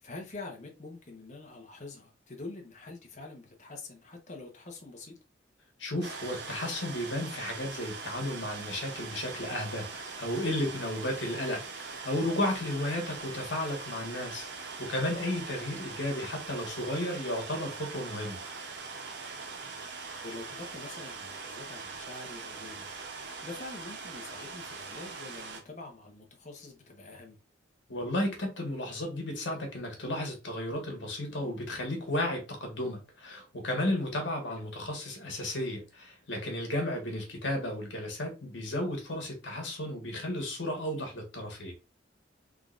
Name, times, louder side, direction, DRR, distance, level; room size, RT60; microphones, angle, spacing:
voice 1, 0.0-5.1 20.2-27.4, left 2 dB, 40° left, 1.0 m, -45 dB
voice 2, 5.8-18.4 27.9-41.7, left 1 dB, 70° left, 1.5 m, -33 dB
sound 1, 6.0-25.6, right 4 dB, 65° right, 0.8 m, -42 dB
3.8 x 3.6 x 2.5 m
head